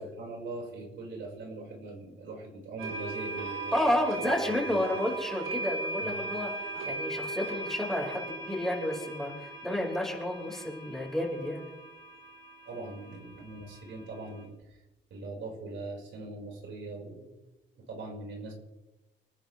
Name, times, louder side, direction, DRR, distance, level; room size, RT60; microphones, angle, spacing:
voice 1, 0.0-4.9 6.0-6.2 6.7-6.9 12.7-14.8 15.1-17.3 17.8-18.5, right 2 dB, 70° right, -1 dB, 5.6 m, -41 dB
sound 1, 2.8-14.4, right 2 dB, 85° right, 4.9 m, -38 dB
voice 2, 3.7-6.5 6.9-11.6, left 1 dB, ahead, -1 dB, 5.4 m, -31 dB
29.5 x 10.5 x 3.5 m, 1.0 s
cardioid pair, 90°, 20 cm